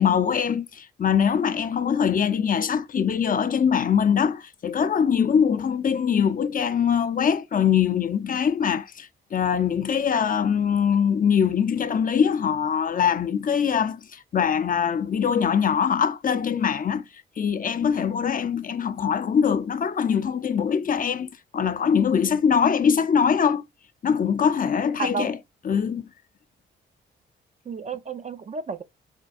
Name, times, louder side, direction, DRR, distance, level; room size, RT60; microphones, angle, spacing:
voice 1, 0.0-17.0 17.4-23.6 24.0-25.4 25.6-26.1, left 7 dB, 45° left, 0.5 m, -23 dB
voice 2, 25.0-25.3 27.7-28.8, right 5 dB, 35° right, 0.4 m, -31 dB
4.3 x 2.3 x 2.4 m
cardioid pair, 70°, 21 cm